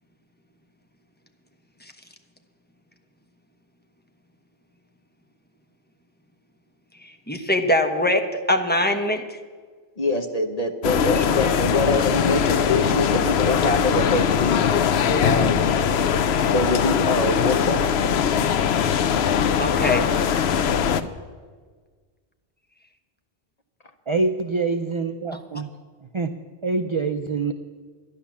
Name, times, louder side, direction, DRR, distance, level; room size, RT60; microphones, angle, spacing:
voice 1, 7.3-8.2 8.5-9.4 11.1-11.2 15.3-15.4 19.6-20.1, left 1 dB, 10° left, 4 dB, 1.0 m, -22 dB
voice 2, 10.0-14.6 15.2-15.7 16.5-17.9, left 2 dB, 40° left, 7 dB, 0.9 m, -24 dB
sound 1, 10.8-21.0, left 7 dB, 80° left, 0.9 m, -21 dB
voice 3, 24.1-25.7 26.1-26.3 26.6-27.5, right 3 dB, 40° right, 8 dB, 0.4 m, -25 dB
12.0 x 10.5 x 7.2 m, 1.5 s
omnidirectional pair, 1.1 m